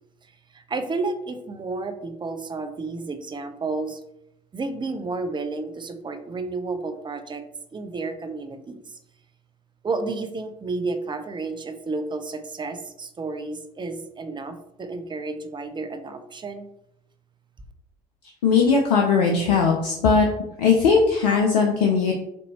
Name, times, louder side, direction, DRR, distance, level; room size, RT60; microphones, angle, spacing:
voice 1, 0.2-4.0 4.5-7.4 7.7-9.0 9.8-16.7, right 3 dB, 20° right, 7 dB, 0.5 m, -31 dB
voice 2, 18.4-20.3 20.6-22.1, left 5 dB, 80° left, 1 dB, 0.5 m, -19 dB
4.3 x 2.6 x 2.8 m, 0.81 s
hypercardioid pair, 55°, 20 cm